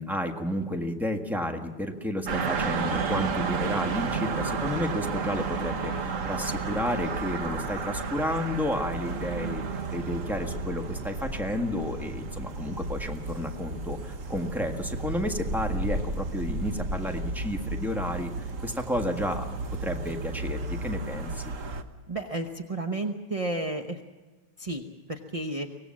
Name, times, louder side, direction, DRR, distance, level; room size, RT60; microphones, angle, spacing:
voice 1, 0.0-9.6 9.9-19.5 19.8-21.5, left 1 dB, ahead, 3 dB, 1.4 m, -31 dB
sound 1, 2.3-21.8, right 4 dB, 45° right, 1.4 m, -32 dB
voice 2, 22.1-24.0 24.6-25.7, right 2 dB, 30° right, 4 dB, 0.6 m, -32 dB
24.0 x 18.5 x 7.5 m, 1.3 s
omnidirectional pair, 2.0 m